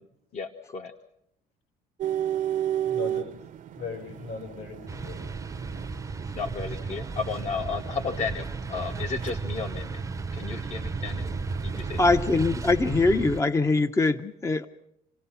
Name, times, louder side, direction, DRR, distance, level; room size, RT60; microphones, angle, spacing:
voice 1, 0.3-0.9 6.3-10.0 10.3-11.3 11.6-12.0, left 5 dB, 45° left, 5 dB, 1.1 m, -33 dB
sound 1, 2.0-12.3, right 11 dB, 50° right, 0.8 m, -35 dB
voice 2, 2.9-5.2, left 4 dB, 75° left, 4 dB, 7.3 m, -39 dB
sound 2, 4.9-13.4, right 4 dB, 20° right, 0.7 m, -34 dB
voice 3, 12.0-14.7, left 3 dB, 15° left, 9 dB, 0.7 m, -22 dB
28.0 x 17.5 x 5.7 m, 0.78 s
cardioid pair, 110°, 17 cm